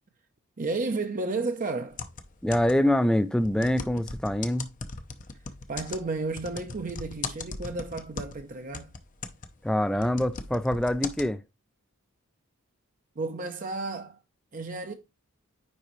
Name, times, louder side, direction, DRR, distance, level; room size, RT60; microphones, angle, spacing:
voice 1, 0.6-2.0 5.7-8.9 13.2-14.2 14.5-14.9, right 3 dB, 40° right, 0.6 m, -32 dB
sound 1, 1.9-3.0 3.4-8.5 8.7-11.3, left 4 dB, 35° left, 0.6 m, -38 dB
voice 2, 2.4-4.7 9.6-11.4, left 1 dB, 5° left, 0.3 m, -25 dB
9.7 x 3.8 x 3.1 m
head